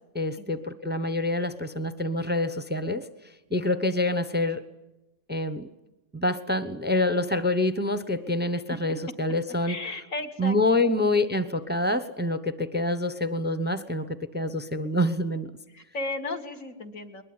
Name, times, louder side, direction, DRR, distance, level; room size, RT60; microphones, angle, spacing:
voice 1, 0.1-3.1 3.5-4.6 5.3-5.7 6.1-9.8 10.4-14.1 14.3-15.5, left 2 dB, 10° right, 12 dB, 0.7 m, -26 dB
voice 2, 9.7-10.6 10.8-11.1 15.7-17.2, left 2 dB, 65° left, 5 dB, 2.4 m, -35 dB
21.5 x 20.5 x 9.6 m, 1.0 s
omnidirectional pair, 1.5 m